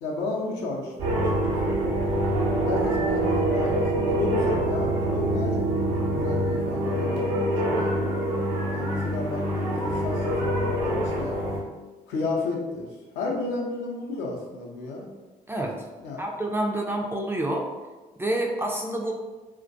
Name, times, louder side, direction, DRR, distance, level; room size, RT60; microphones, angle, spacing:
voice 1, 0.0-1.7 2.7-5.7 6.0-7.9 8.7-11.4 12.1-15.1 16.0-16.2, left 2 dB, 65° left, -2 dB, 0.5 m, -33 dB
sound 1, 1.0-11.6, right 1 dB, 75° right, 0.6 m, -25 dB
voice 2, 16.2-17.7 18.2-19.1, right 1 dB, 10° right, 0 dB, 0.4 m, -28 dB
2.2 x 2.2 x 2.6 m, 1.2 s
figure-of-eight pair, 40°, 20 cm